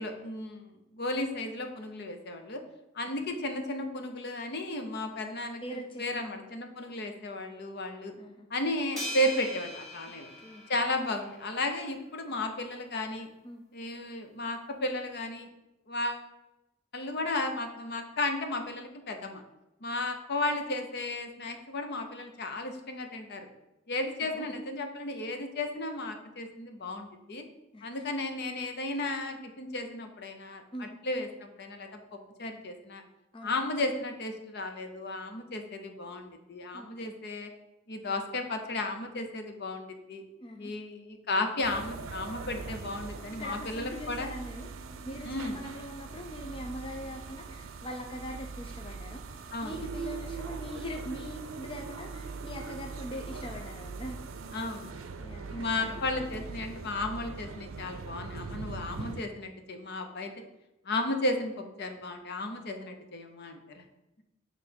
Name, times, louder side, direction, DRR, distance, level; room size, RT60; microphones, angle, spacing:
voice 1, 0.0-2.6 2.9-8.1 8.5-10.3 10.7-13.3 13.7-15.5 15.9-16.3 16.9-19.4 19.8-23.5 23.9-27.4 27.8-31.9 32.4-33.0 33.4-37.5 37.9-40.2 40.6-44.3 45.2-45.6 49.5-49.8 54.5-55.2 55.5-60.3 60.8-63.8, left 2 dB, 55° left, 5 dB, 0.8 m, -34 dB
voice 2, 5.6-6.5 8.2-8.5 10.4-10.6 13.4-13.6 24.2-24.5 27.7-28.1 30.7-31.0 33.3-33.6 36.7-37.1 40.4-40.7 43.4-54.2 55.2-56.1, equal, 25° left, 1 dB, 0.5 m, -42 dB
sound 1, 9.0-11.5, left 1 dB, ahead, 2.6 m, -40 dB
sound 2, 41.6-59.2, right 4 dB, 85° right, 0.5 m, -41 dB
7.8 x 3.2 x 5.3 m, 0.94 s
head